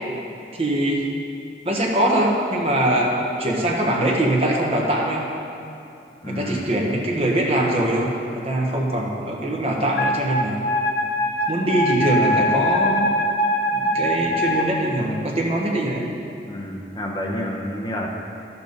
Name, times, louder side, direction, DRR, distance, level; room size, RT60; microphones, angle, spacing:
voice 1, 0.5-1.1 1.6-5.2 6.3-10.6 11.5-13.1 13.7-16.1, right 1 dB, 35° right, -2 dB, 1.2 m, -22 dB
voice 2, 6.2-6.7 16.4-18.1, left 1 dB, 25° left, -1 dB, 0.8 m, -29 dB
Wind instrument woodwind instrument, 10.0-14.7, left 1 dB, 60° left, 0.8 m, -22 dB
12.0 x 6.9 x 4.0 m, 2.6 s
head